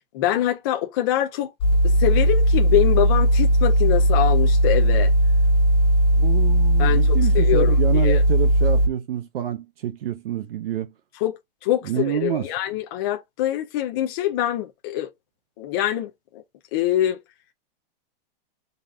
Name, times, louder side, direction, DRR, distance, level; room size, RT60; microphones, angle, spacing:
voice 1, 0.1-1.5 1.8-5.1 6.8-7.0 7.3-7.7 8.0-8.2 11.2-15.1 15.6-16.4 16.7-17.2, left 12 dB, 25° left, 0.4 m, -24 dB
sound 1, 1.6-8.9, right 1 dB, 45° left, 1.2 m, -18 dB
voice 2, 6.1-10.9 11.8-12.5, right 10 dB, 75° right, 0.8 m, -28 dB
4.0 x 2.6 x 3.3 m
supercardioid pair, 170°, 29 cm